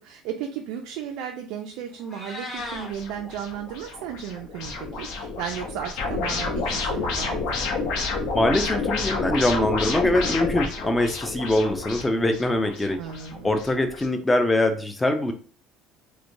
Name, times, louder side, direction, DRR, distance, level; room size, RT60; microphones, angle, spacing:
voice 1, 0.0-7.4 13.0-13.5, right 9 dB, 80° right, 3 dB, 0.3 m, -35 dB
Meow, 1.9-2.9, left 2 dB, 25° left, 0.7 m, -36 dB
sound 1, 2.6-14.1, left 3 dB, 65° left, 0.6 m, -30 dB
voice 2, 8.3-13.0 13.4-15.3, left 1 dB, 10° left, 7 dB, 0.3 m, -23 dB
3.0 x 2.1 x 2.5 m, 0.41 s
cardioid pair, 170°, 0 cm